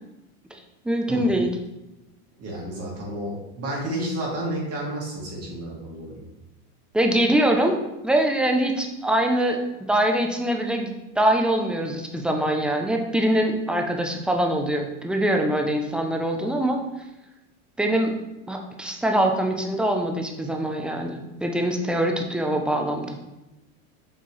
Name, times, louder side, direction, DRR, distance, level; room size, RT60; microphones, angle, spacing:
voice 1, 0.8-1.5 6.9-7.8 8.0-16.8 17.8-18.1 18.5-23.2, right 1 dB, ahead, 3 dB, 0.3 m, -23 dB
voice 2, 2.4-6.2, right 1 dB, 35° right, -4 dB, 2.0 m, -31 dB
7.2 x 4.4 x 3.0 m, 0.99 s
supercardioid pair, 115°, 44 cm